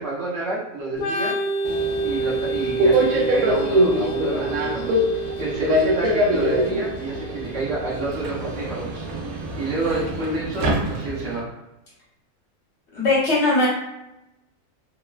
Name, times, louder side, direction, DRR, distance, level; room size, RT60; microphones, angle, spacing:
voice 1, 0.0-1.3 2.0-11.6, right 3 dB, 60° right, -5 dB, 1.0 m, -30 dB
Organ, 0.9-8.5, right 2 dB, 75° left, 1.0 m, -29 dB
Subway metro underground, 1.7-11.4, equal, 85° right, 1.1 m, -24 dB
voice 2, 9.8-10.4 12.9-13.7, left 2 dB, 55° left, -7 dB, 1.1 m, -22 dB
3.0 x 2.1 x 2.3 m, 0.92 s
omnidirectional pair, 1.5 m